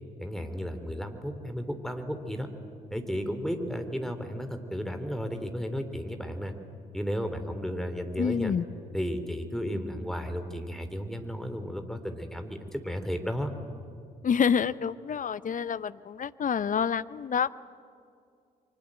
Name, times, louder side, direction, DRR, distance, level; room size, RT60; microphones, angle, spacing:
voice 1, 0.2-2.5 2.9-6.5 6.9-8.5 8.9-13.5, equal, ahead, 7 dB, 3.5 m, -33 dB
voice 2, 8.2-8.6 14.2-17.5, left 7 dB, 40° left, 17 dB, 0.8 m, -27 dB
30.0 x 24.0 x 7.8 m, 2.4 s
figure-of-eight pair, 40°, 21 cm